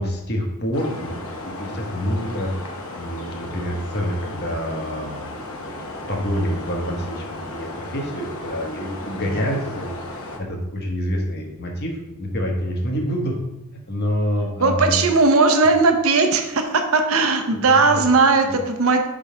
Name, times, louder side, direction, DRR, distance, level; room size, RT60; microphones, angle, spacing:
voice 1, 0.0-2.5 3.0-13.4 13.7-15.0 17.7-18.0 18.5-18.6, equal, 45° left, 1 dB, 1.1 m, -27 dB
sound 1, 0.7-10.4, left 2 dB, 65° left, 0.9 m, -35 dB
voice 2, 14.6-19.1, right 3 dB, 70° right, 5 dB, 0.7 m, -18 dB
5.6 x 3.8 x 4.9 m, 0.96 s
head